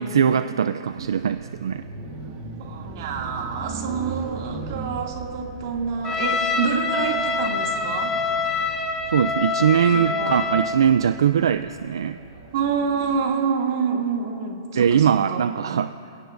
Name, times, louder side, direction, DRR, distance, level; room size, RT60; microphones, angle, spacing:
voice 1, 0.0-1.8 9.1-12.2 14.7-16.0, right 8 dB, 85° right, 12 dB, 0.4 m, -21 dB
sound 1, 0.9-13.2, right 3 dB, 40° right, 2.0 m, -39 dB
voice 2, 2.6-8.2 9.9-10.4 12.5-15.4, right 6 dB, 60° right, 1 dB, 2.3 m, -27 dB
Trumpet, 6.0-10.8, left 4 dB, 15° left, 1.4 m, -25 dB
27.5 x 16.5 x 2.6 m, 2.7 s
hypercardioid pair, 145°, 2 cm